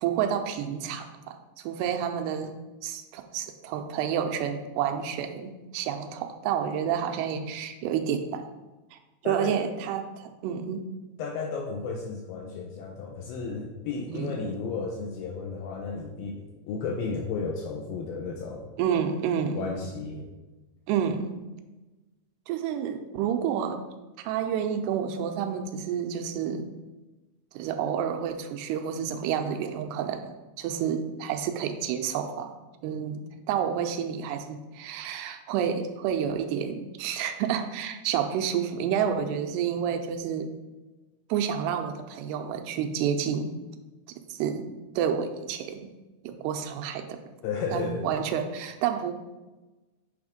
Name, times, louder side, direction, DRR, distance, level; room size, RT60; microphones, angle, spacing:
voice 1, 0.0-1.4 1.6-2.5 2.8-8.5 8.9-10.9 14.1-14.5 18.8-19.7 20.9-21.4 22.5-23.8 24.2-26.7 27.5-32.5 32.8-33.2 33.5-40.5 41.3-43.6 44.3-44.7 45.0-45.9 46.2-47.2 47.7-49.1, right 8 dB, 85° right, 7 dB, 2.6 m, -29 dB
voice 2, 9.2-9.6 11.2-18.7 19.5-20.3 47.4-48.1, left 4 dB, 80° left, 1 dB, 2.1 m, -33 dB
8.7 x 3.4 x 5.1 m, 1.1 s
omnidirectional pair, 4.7 m